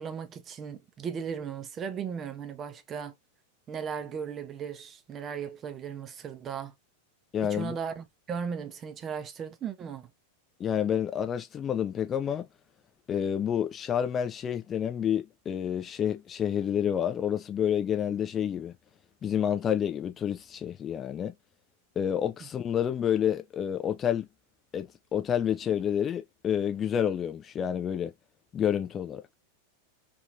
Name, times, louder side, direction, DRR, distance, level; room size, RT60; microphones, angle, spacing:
voice 1, 0.0-3.1 3.7-6.7 7.4-10.1 22.4-22.5, right 7 dB, 25° right, 0.5 m, -37 dB
voice 2, 7.3-7.8 10.6-12.5 13.1-18.7 19.2-21.3 22.0-24.3 24.7-28.1 28.5-29.2, left 9 dB, 25° left, 0.3 m, -29 dB
2.8 x 2.5 x 2.4 m
figure-of-eight pair, 90°, 0 cm